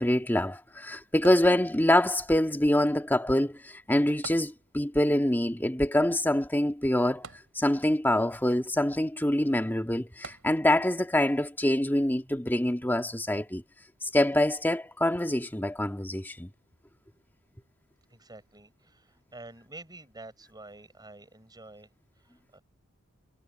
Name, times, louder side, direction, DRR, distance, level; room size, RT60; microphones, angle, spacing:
voice 1, 0.0-7.2 7.6-13.6 14.1-16.5, left 1 dB, 10° left, 1.9 m, -25 dB
sound 1, 1.2-2.1 4.2-5.1 5.4-5.5 7.2-8.1 10.2-11.0 11.6-11.7, right 4 dB, 80° right, 3.7 m, -47 dB
voice 2, 18.1-22.6, right 2 dB, 20° right, 7.0 m, -49 dB
head